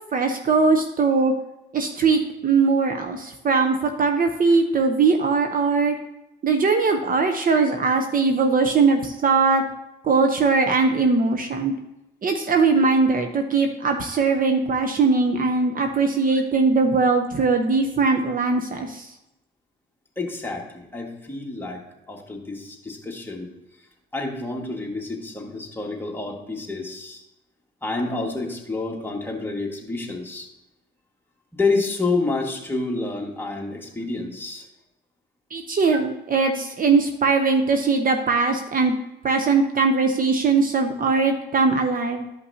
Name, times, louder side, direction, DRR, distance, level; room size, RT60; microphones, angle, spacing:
voice 1, 0.1-1.3 1.7-6.0 6.4-9.6 10.0-11.7 12.2-19.1 35.5-38.9 39.2-42.3, right 4 dB, 45° right, 5 dB, 0.8 m, -20 dB
voice 2, 20.2-23.5 24.1-27.2 27.8-30.5 31.5-34.7, left 3 dB, 10° left, -1 dB, 1.8 m, -28 dB
12.5 x 5.6 x 2.8 m, 0.91 s
cardioid pair, 90°, 20 cm